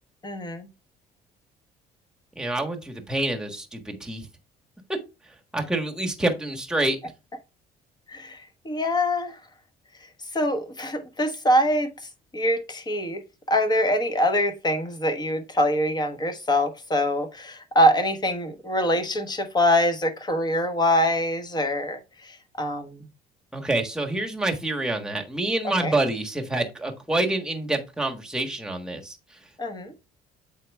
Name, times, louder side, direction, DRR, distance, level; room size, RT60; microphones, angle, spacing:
voice 1, 0.2-0.7 8.1-9.4 10.3-11.9 12.3-13.2 13.5-23.0 25.8-25.9 29.6-29.9, equal, 25° left, 1.3 m, -24 dB
voice 2, 2.3-4.3 5.5-7.0 23.5-29.2, right 2 dB, 5° right, 1.4 m, -27 dB
7.6 x 4.5 x 3.4 m
cardioid pair, 110°, 17 cm